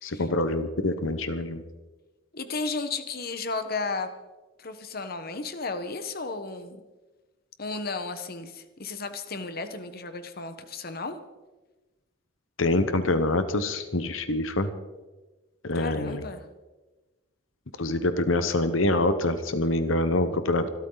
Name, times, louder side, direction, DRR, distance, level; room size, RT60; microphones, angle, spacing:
voice 1, 0.0-1.6 12.6-14.7 15.6-16.2 17.8-20.7, left 2 dB, 80° left, 10 dB, 1.1 m, -25 dB
voice 2, 2.3-4.1 4.6-6.8 7.6-11.2 15.7-16.4, left 3 dB, 50° left, 9 dB, 1.3 m, -34 dB
25.5 x 13.0 x 4.0 m, 1.2 s
head